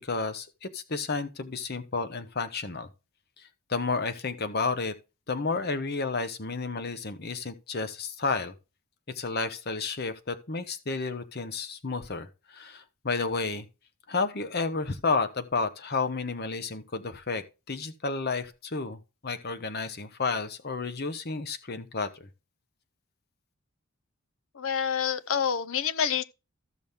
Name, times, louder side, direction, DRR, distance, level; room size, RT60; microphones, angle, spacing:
voice 1, 0.0-2.9 3.4-4.9 5.3-8.5 9.1-13.7 14.1-22.3, left 4 dB, 45° left, 0.9 m, -31 dB
voice 2, 24.5-26.2, left 7 dB, 65° left, 0.6 m, -27 dB
14.0 x 6.2 x 3.6 m
head